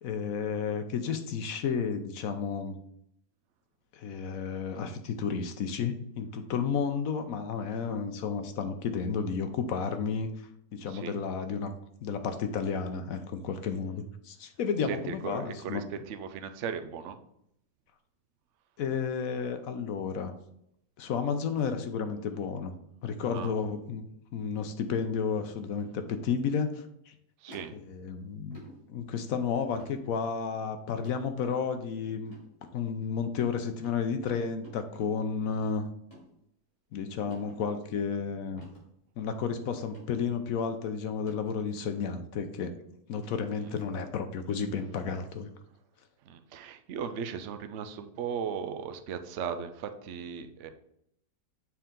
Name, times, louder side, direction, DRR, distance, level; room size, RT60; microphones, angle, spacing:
voice 1, 0.0-2.7 3.9-10.3 10.7-11.7 12.0-15.8 18.8-20.4 21.0-22.7 23.0-24.1 24.3-27.1 27.7-28.6 28.9-32.3 32.7-35.9 36.9-38.6 39.2-42.7 43.1-45.5, left 6 dB, 65° left, 8 dB, 0.9 m, -32 dB
voice 2, 14.9-17.2 23.3-23.5 27.4-27.7 43.6-43.7 46.3-50.7, right 7 dB, 75° right, 8 dB, 0.6 m, -37 dB
sound 1, 27.5-28.1 28.5-28.8 29.7-30.0 31.0-31.2 32.2-32.4 33.0-33.4 33.8-34.0 34.6-35.1 36.0-36.3 37.3-37.6 38.6-38.8 39.2-39.3 39.8-40.2 41.1-41.4 42.5-42.6 43.7-43.9 44.8-45.0, left 1 dB, 20° left, 2.9 m, -50 dB
7.0 x 4.6 x 3.7 m, 0.74 s
omnidirectional pair, 1.9 m